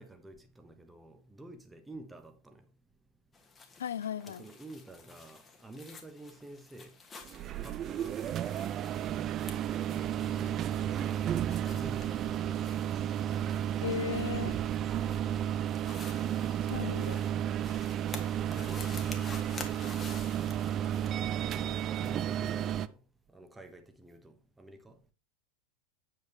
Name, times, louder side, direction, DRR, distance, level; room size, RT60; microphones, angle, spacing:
voice 1, 0.0-2.6 4.3-7.0 7.6-8.8 9.9-12.9 18.4-19.0 21.5-23.0 23.3-25.0, right 1 dB, 5° right, 1.1 m, -50 dB
sound 1, 3.3-21.1, left 4 dB, 15° left, 1.3 m, -51 dB
voice 2, 3.8-4.4 13.8-14.6 16.7-17.2, left 8 dB, 65° left, 0.6 m, -36 dB
sound 2, 7.2-22.9, right 10 dB, 30° right, 0.4 m, -32 dB
7.9 x 7.7 x 3.1 m
figure-of-eight pair, 90°, 0 cm